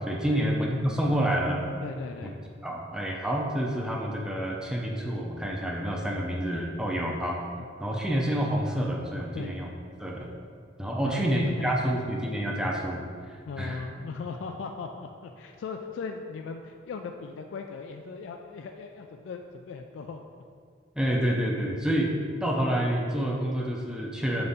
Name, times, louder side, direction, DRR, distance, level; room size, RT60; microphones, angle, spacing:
voice 1, 0.0-1.7 2.6-7.4 7.8-9.7 10.0-10.3 10.8-13.0 13.3-13.9 20.9-22.1 22.4-24.5, right 1 dB, 5° right, -1 dB, 0.5 m, -28 dB
voice 2, 1.8-2.4 7.0-7.2 7.6-7.7 9.3-9.5 11.0-11.9 12.6-12.7 13.5-20.2, left 4 dB, 75° left, 4 dB, 0.3 m, -38 dB
6.6 x 4.0 x 3.6 m, 2.2 s
head